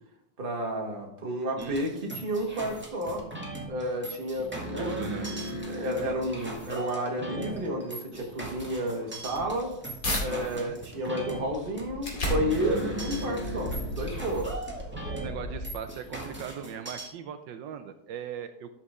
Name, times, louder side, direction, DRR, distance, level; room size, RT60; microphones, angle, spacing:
voice 1, 0.4-3.3 3.7-4.9 5.7-9.7 10.2-14.5, equal, 30° right, 1 dB, 1.6 m, -31 dB
sound 1, 1.6-17.1, right 1 dB, 5° right, 1.8 m, -38 dB
voice 2, 4.4-5.3 10.3-10.7 15.2-18.7, right 8 dB, 75° right, 8 dB, 1.3 m, -39 dB
sound 2, 9.1-10.3 10.8-16.1, left 1 dB, 45° left, 2.9 m, -35 dB
12.5 x 6.7 x 3.6 m, 0.80 s
omnidirectional pair, 2.1 m